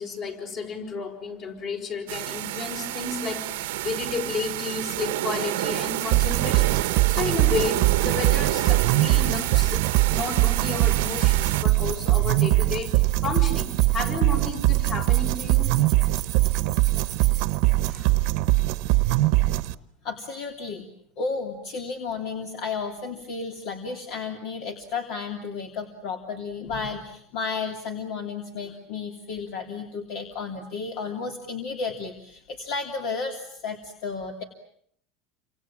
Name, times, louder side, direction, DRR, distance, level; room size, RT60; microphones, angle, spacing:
voice 1, 0.0-15.7, left 4 dB, 40° left, 5 dB, 6.0 m, -32 dB
sound 1, 2.1-11.6, right 16 dB, 85° right, 1.1 m, -29 dB
sound 2, 5.7-17.9, right 12 dB, 35° right, 1.2 m, -40 dB
sound 3, 6.1-19.7, right 18 dB, 60° right, 1.1 m, -22 dB
voice 2, 17.8-18.1 20.0-20.9 21.2-34.4, left 4 dB, 60° left, 4 dB, 3.1 m, -33 dB
29.5 x 27.0 x 7.4 m, 0.66 s
supercardioid pair, 145°, 0 cm